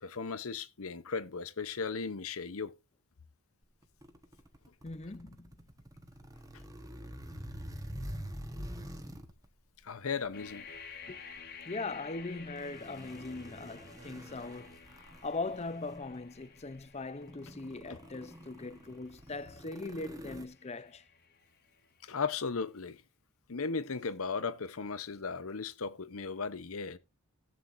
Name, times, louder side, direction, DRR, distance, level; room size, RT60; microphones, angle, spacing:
voice 1, 0.0-2.7 9.8-10.7 17.9-18.0 22.0-23.0 23.5-27.0, left 5 dB, 75° left, 0.8 m, -36 dB
sound 1, 3.8-9.4 10.2-10.5 12.4-16.2 16.8-16.9 17.2-20.4, equal, 15° right, 1.2 m, -46 dB
voice 2, 4.8-5.5 8.0-8.1 11.1-11.2 11.7-21.0, left 3 dB, 30° left, 0.6 m, -40 dB
sound 2, 10.3-22.1, left 5 dB, 45° left, 1.5 m, -53 dB
15.5 x 7.9 x 2.6 m
head